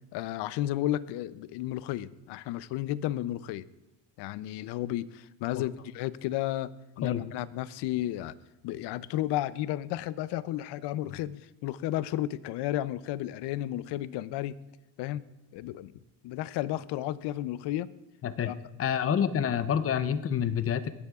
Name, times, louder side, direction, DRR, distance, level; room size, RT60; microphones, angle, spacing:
voice 1, 0.1-3.6 4.2-6.7 7.0-8.3 8.6-14.6 15.0-15.2 15.5-15.9 16.2-17.9 18.5-18.6, left 14 dB, 80° left, 17 dB, 0.6 m, -33 dB
voice 2, 18.2-18.5 18.8-20.9, left 8 dB, 35° left, 13 dB, 0.6 m, -28 dB
19.5 x 9.7 x 2.4 m, 0.97 s
cardioid pair, 130°, 40 cm